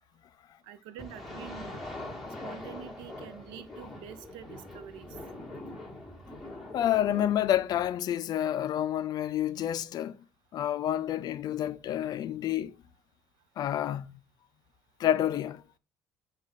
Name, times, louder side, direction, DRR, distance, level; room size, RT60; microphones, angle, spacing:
voice 1, 0.6-1.8 2.4-5.2, right 9 dB, 85° right, 0.5 m, -46 dB
sound 1, 1.0-7.9, left 2 dB, ahead, 1.6 m, -43 dB
voice 2, 6.7-10.2 10.5-12.7 13.6-14.1 15.0-15.6, left 11 dB, 55° left, 0.4 m, -29 dB
6.3 x 2.4 x 3.5 m
supercardioid pair, 90°, 8 cm